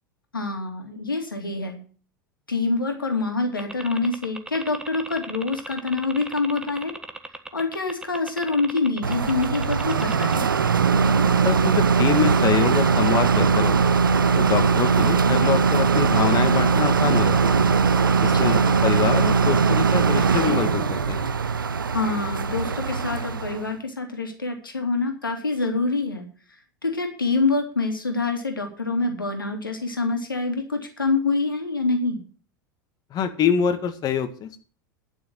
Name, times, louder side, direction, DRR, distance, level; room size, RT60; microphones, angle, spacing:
voice 1, 0.3-1.8 2.5-6.9 7.5-10.5 18.1-18.7 21.9-26.3 26.8-32.2, left 3 dB, 85° left, 4 dB, 2.6 m, -26 dB
sound 1, 3.6-10.3, right 2 dB, 5° right, 1.4 m, -37 dB
sound 2, 9.0-23.7, right 5 dB, 80° right, 0.6 m, -20 dB
voice 2, 11.4-14.0 14.4-17.6 18.2-21.3 33.1-34.6, left 8 dB, 35° left, 9 dB, 1.9 m, -25 dB
11.0 x 6.3 x 7.6 m, 0.40 s
figure-of-eight pair, 85°, 11 cm